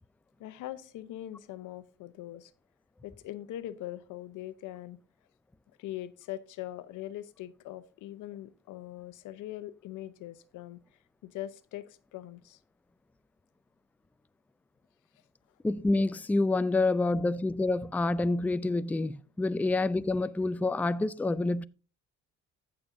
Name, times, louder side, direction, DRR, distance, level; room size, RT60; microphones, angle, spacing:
voice 1, 0.4-2.5 3.0-5.0 5.8-10.8 11.2-12.6, left 13 dB, 90° left, 0.8 m, -42 dB
voice 2, 15.6-21.7, left 2 dB, 5° left, 0.4 m, -27 dB
15.0 x 7.0 x 2.6 m
cardioid pair, 90°, 30 cm